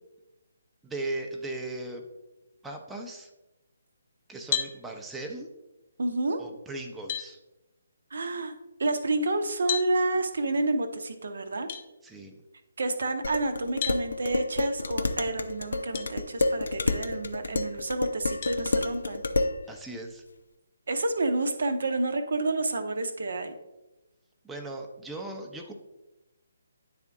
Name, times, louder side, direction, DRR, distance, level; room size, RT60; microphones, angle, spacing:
voice 1, 0.8-2.0 2.6-3.3 4.3-5.5 6.4-7.4 12.0-12.4 19.7-20.2 24.4-25.7, right 2 dB, 5° right, 1 dB, 0.6 m, -38 dB
sound 1, 4.5-4.8 6.4-6.5 7.1-7.3 9.7-9.9 11.7-11.8 13.8-14.0 15.9-16.1 16.7-16.8 18.4-18.6, left 8 dB, 40° left, 0.8 m, -31 dB
voice 2, 6.0-6.4 8.1-8.5 8.8-11.7 12.8-19.2 20.9-23.5, right 2 dB, 65° right, 8 dB, 0.8 m, -29 dB
Dishes pots and pans, 13.2-19.6, left 2 dB, 70° left, 0.5 m, -29 dB
9.3 x 3.6 x 3.6 m, 1.0 s
figure-of-eight pair, 145°, 0 cm